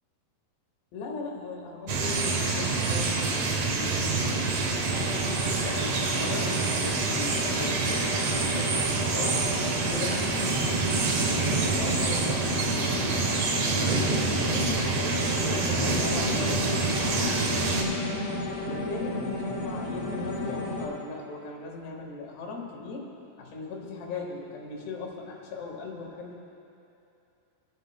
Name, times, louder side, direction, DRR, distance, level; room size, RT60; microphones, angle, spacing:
voice 1, 0.9-5.1 5.6-9.4 9.9-14.7 15.3-18.2 18.6-23.1 23.4-26.4, left 3 dB, 80° left, -1 dB, 3.6 m, -39 dB
sound 1, 1.9-17.8, right 3 dB, 80° right, 1.5 m, -27 dB
sound 2, 4.8-20.9, left 1 dB, 50° left, 2.1 m, -34 dB
23.5 x 12.0 x 2.2 m, 2.7 s
omnidirectional pair, 4.7 m